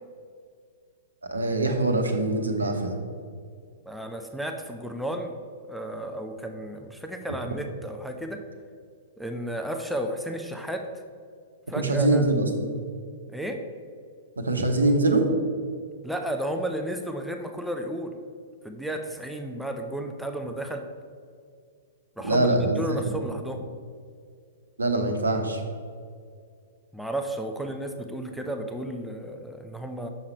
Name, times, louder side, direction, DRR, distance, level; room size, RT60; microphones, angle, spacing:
voice 1, 1.3-3.0 11.8-12.7 14.4-15.3 22.2-23.0 24.8-25.6, right 2 dB, 75° right, 5 dB, 0.9 m, -23 dB
voice 2, 3.9-5.3 5.7-8.4 9.2-11.0 11.7-12.3 13.3-13.6 16.0-18.2 18.6-20.8 22.2-23.6 26.9-30.1, right 1 dB, ahead, 4 dB, 0.5 m, -33 dB
6.4 x 5.7 x 4.5 m, 2.1 s
figure-of-eight pair, 105°, 0 cm